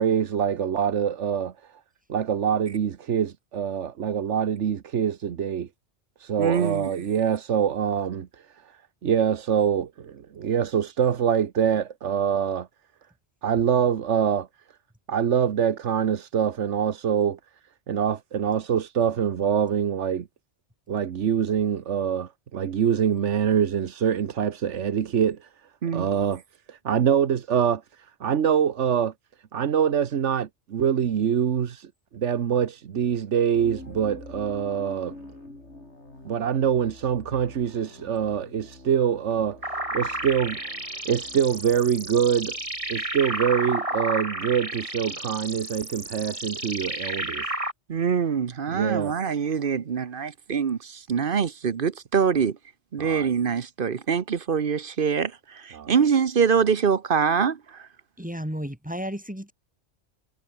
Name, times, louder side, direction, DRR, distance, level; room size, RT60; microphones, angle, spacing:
voice 1, 0.0-1.5 2.1-5.7 6.2-8.3 9.0-12.7 13.4-14.5 15.1-17.4 17.9-20.3 20.9-25.5 25.9-26.4 26.7-29.1 29.5-35.1 36.2-39.6 39.9-40.8 41.0-42.6 42.9-47.6 48.7-49.1 53.0-53.3 55.7-55.9, right 8 dB, 80° right, 1.4 m, -25 dB
voice 2, 6.4-6.9 25.8-26.1 47.9-52.6 52.9-55.3 55.6-57.6, right 6 dB, 50° right, 1.0 m, -24 dB
sound 1, 33.5-43.5, left 2 dB, 70° left, 5.6 m, -46 dB
sound 2, 39.6-47.7, right 1 dB, 30° right, 4.0 m, -32 dB
voice 3, 58.2-59.5, equal, 5° right, 2.3 m, -33 dB
omnidirectional pair, 1.2 m